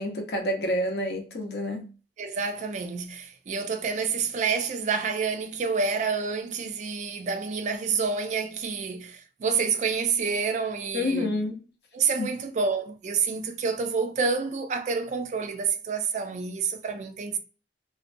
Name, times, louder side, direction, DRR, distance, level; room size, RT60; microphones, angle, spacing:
voice 1, 0.0-1.8 10.9-11.6 12.2-12.3, left 1 dB, 65° left, 0.6 m, -28 dB
voice 2, 2.2-11.3 11.9-17.4, right 5 dB, 40° right, 0.3 m, -28 dB
2.4 x 2.1 x 2.4 m
head